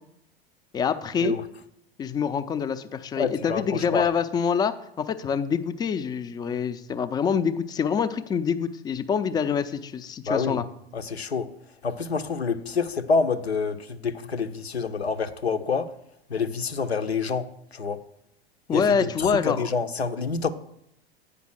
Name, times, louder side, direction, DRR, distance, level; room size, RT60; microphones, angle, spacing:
voice 1, 0.7-1.3 2.0-10.7 18.7-19.7, left 6 dB, 15° left, 0.3 m, -26 dB
voice 2, 3.2-4.0 10.3-10.6 10.9-11.5 11.8-15.9 16.3-17.5 17.7-18.0 18.7-20.5, left 5 dB, 85° left, 0.6 m, -27 dB
8.5 x 5.2 x 6.2 m
figure-of-eight pair, 85°, 31 cm